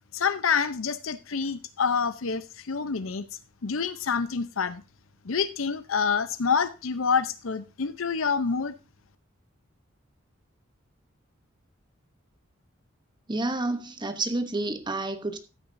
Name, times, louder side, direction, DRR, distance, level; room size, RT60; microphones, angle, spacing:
voice 1, 0.1-3.2 3.6-4.8 5.2-8.7, left 5 dB, 90° left, 0.7 m, -27 dB
voice 2, 13.3-15.4, right 2 dB, 25° right, 1.0 m, -29 dB
13.5 x 8.9 x 2.7 m
head